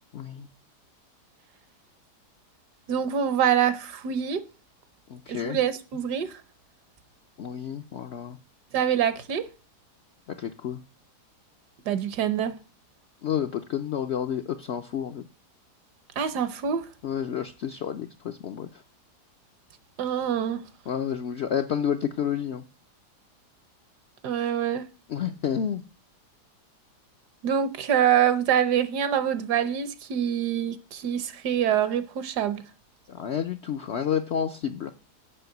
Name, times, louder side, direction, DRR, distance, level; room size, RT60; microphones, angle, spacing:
voice 1, 0.1-0.5 5.1-5.6 7.4-8.4 10.3-10.8 13.2-15.2 17.0-18.8 20.9-22.6 25.1-25.8 33.1-34.9, left 8 dB, 70° left, 0.6 m, -30 dB
voice 2, 2.9-4.4 5.3-6.3 8.7-9.5 11.9-12.5 16.2-16.9 20.0-20.6 24.2-24.8 27.4-32.6, right 9 dB, 75° right, 1.5 m, -25 dB
7.7 x 5.9 x 7.8 m
omnidirectional pair, 1.8 m